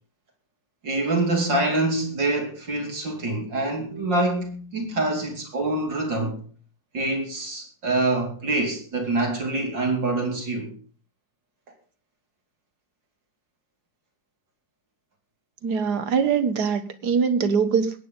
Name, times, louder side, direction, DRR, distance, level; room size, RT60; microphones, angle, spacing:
voice 1, 0.8-6.4 6.9-10.7, right 2 dB, 80° right, 4.5 m, -25 dB
voice 2, 15.6-18.1, right 6 dB, 65° right, 1.8 m, -23 dB
21.5 x 9.2 x 3.9 m
omnidirectional pair, 1.9 m